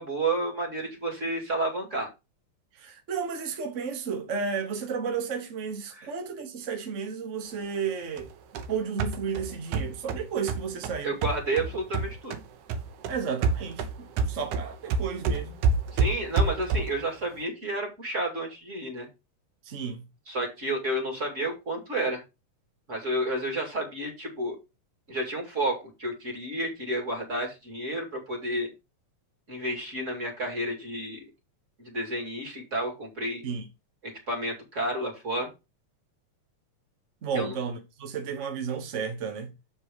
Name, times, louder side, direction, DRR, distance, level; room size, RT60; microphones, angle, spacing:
voice 1, 0.0-2.1 6.0-6.1 11.0-12.3 15.9-19.1 20.3-22.2 22.9-24.6 25.1-28.7 29.5-31.3 31.8-33.4 34.0-35.5 37.3-37.5, right 1 dB, 25° right, 2.6 m, -31 dB
voice 2, 2.7-8.3 8.7-11.1 13.1-15.6 19.6-20.0 33.4-33.7 37.2-39.5, right 6 dB, 55° right, 0.8 m, -33 dB
sound 1, 8.2-12.4 12.7-17.1, right 4 dB, 85° right, 2.4 m, -28 dB
7.2 x 5.4 x 4.9 m
omnidirectional pair, 3.3 m